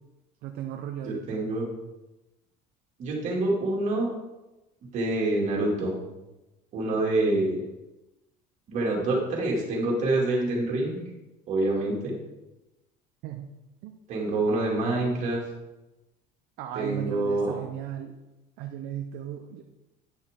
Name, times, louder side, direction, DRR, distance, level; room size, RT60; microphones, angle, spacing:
voice 1, 0.4-1.4 6.9-7.0 13.2-13.5 13.8-13.9 16.6-18.1 18.6-19.6, right 10 dB, 60° right, 4 dB, 0.7 m, -36 dB
voice 2, 1.0-1.7 3.0-4.1 4.9-6.0 6.7-7.6 8.7-11.0 11.5-12.1 14.1-15.4 16.8-17.6, right 2 dB, 40° right, -3 dB, 2.5 m, -26 dB
9.8 x 6.4 x 3.7 m, 1.0 s
cardioid pair, 165°, 18 cm